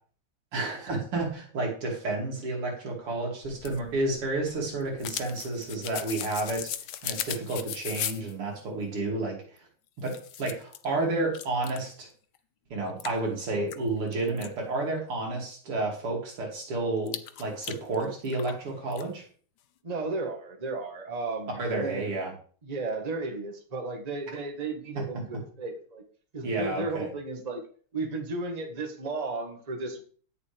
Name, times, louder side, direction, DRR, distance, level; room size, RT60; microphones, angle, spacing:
voice 1, 0.5-6.7 7.0-9.4 10.0-12.1 12.7-19.3 21.6-22.3 26.4-27.1, right 2 dB, 80° right, -1 dB, 3.7 m, -31 dB
sound 1, 3.4-8.3 9.6-9.7 10.0-10.9 11.3-11.9 12.4-12.5 13.0-14.5 17.1-18.6 18.9-19.0, left 10 dB, 65° left, 1.1 m, -37 dB
voice 2, 19.8-22.2 22.6-26.0 26.3-27.6 27.9-30.0, right 3 dB, 20° right, 3 dB, 1.4 m, -34 dB
16.5 x 6.9 x 3.5 m, 0.44 s
omnidirectional pair, 2.4 m